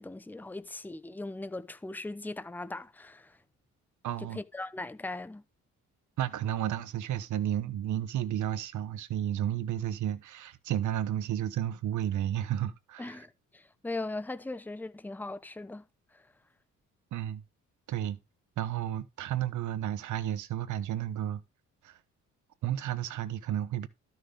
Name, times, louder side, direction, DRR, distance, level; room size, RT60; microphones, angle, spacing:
voice 1, 0.0-3.4 4.2-5.4 13.0-15.8 16.1-16.2, left 2 dB, 5° left, 0.8 m, -39 dB
voice 2, 4.0-4.4 6.2-13.2 17.1-17.4 17.9-18.2 18.6-21.4 21.8-22.0 22.6-23.9, right 11 dB, 75° right, 1.1 m, -32 dB
13.0 x 6.1 x 3.4 m
cardioid pair, 90°, 30 cm